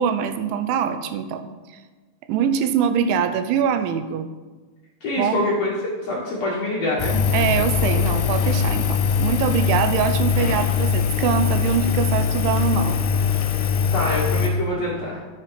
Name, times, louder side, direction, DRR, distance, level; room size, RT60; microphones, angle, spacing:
voice 1, 0.0-1.5 2.3-4.3 5.2-5.4 7.3-13.0, right 7 dB, 80° right, 10 dB, 3.0 m, -23 dB
voice 2, 5.0-5.7 6.0-7.2 13.9-15.2, left 1 dB, 85° left, -5 dB, 1.4 m, -25 dB
Engine, 7.0-14.5, left 7 dB, 70° left, 2.2 m, -21 dB
10.5 x 7.5 x 5.8 m, 1.3 s
omnidirectional pair, 5.6 m